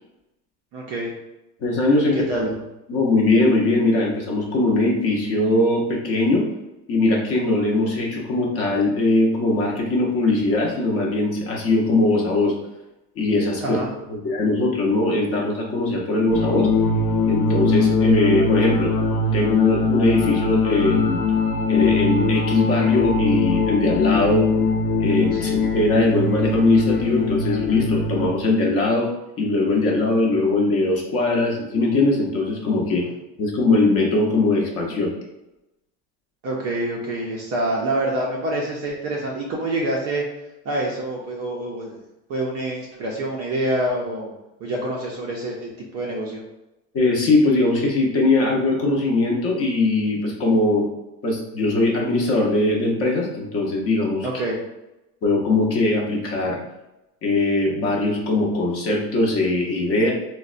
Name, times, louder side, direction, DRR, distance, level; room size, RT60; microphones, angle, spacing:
voice 1, 0.7-1.1 2.1-2.5 13.6-13.9 25.3-25.6 33.0-33.2 36.4-40.2 40.7-41.9 42.3-44.3 44.6-46.4 54.2-54.6, right 1 dB, 35° right, -2 dB, 0.4 m, -26 dB
voice 2, 1.6-2.5 2.9-6.5 6.9-12.5 13.2-13.8 14.1-16.7 17.3-18.9 19.3-21.2 21.7-24.5 25.0-29.1 29.4-33.1 33.4-35.1 46.9-50.9 51.2-54.3 55.2-56.6 57.2-60.1, left 2 dB, 30° left, -1 dB, 0.5 m, -20 dB
sound 1, 16.3-28.3, left 4 dB, 85° left, 0.7 m, -21 dB
4.0 x 2.1 x 2.4 m, 0.94 s
supercardioid pair, 130°, 50 cm